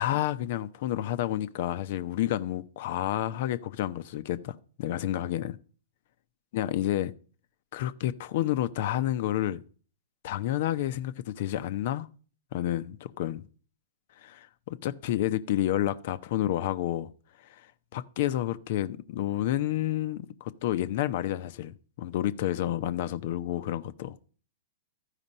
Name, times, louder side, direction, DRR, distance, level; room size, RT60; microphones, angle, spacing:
voice 1, 0.0-5.6 6.5-7.1 7.7-9.6 10.2-12.1 12.5-13.5 14.2-17.1 17.9-24.2, left 13 dB, 55° left, 0.7 m, -30 dB
13.5 x 5.0 x 5.4 m
hypercardioid pair, 115°, 0 cm